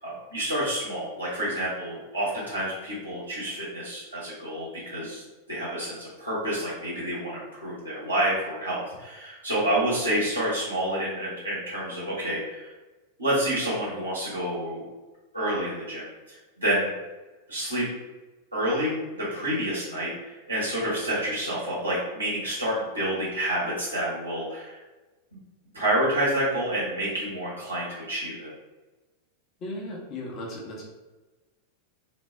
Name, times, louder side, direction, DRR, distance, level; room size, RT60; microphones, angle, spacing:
voice 1, 0.0-5.2 5.5-12.7 13.2-14.8 15.3-16.9 17.5-17.9 18.5-24.8 25.7-28.5, right 1 dB, 85° right, -9 dB, 1.0 m, -28 dB
voice 2, 29.6-30.8, left 1 dB, 35° left, -2 dB, 0.8 m, -36 dB
2.6 x 2.1 x 3.3 m, 1.2 s
figure-of-eight pair, 90°, 0 cm